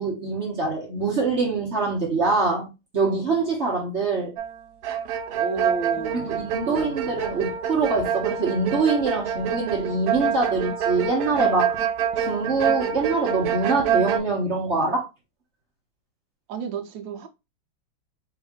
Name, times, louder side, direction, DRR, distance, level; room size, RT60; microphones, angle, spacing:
voice 1, 0.0-2.7 2.9-4.3 6.1-11.8 12.2-15.1, right 3 dB, 45° right, 1.0 m, -24 dB
sound 1, 4.4-4.6 4.8-14.2, right 8 dB, 90° right, 0.8 m, -26 dB
voice 2, 5.3-6.4 6.6-7.0 16.5-17.3, right 4 dB, 70° right, 1.3 m, -32 dB
3.5 x 2.6 x 3.6 m
omnidirectional pair, 2.2 m